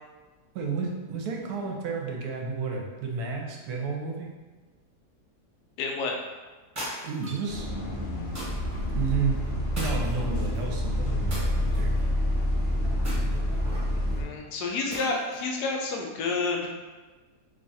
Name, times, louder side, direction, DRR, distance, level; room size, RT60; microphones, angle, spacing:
voice 1, 0.5-4.3 7.0-7.7 8.9-9.4 9.7-11.9, right 5 dB, 75° right, 0 dB, 1.1 m, -31 dB
voice 2, 5.8-6.2 14.2-16.7, left 3 dB, 75° left, 1 dB, 1.1 m, -29 dB
sound 1, 6.8-7.5 8.4-8.8 9.8-10.6 11.3-12.0 13.0-13.9 14.9-15.5, equal, 15° right, 0.8 m, -38 dB
Bus, 7.5-14.2, left 1 dB, 55° left, 0.7 m, -28 dB
3.1 x 2.3 x 4.0 m, 1.3 s
omnidirectional pair, 1.8 m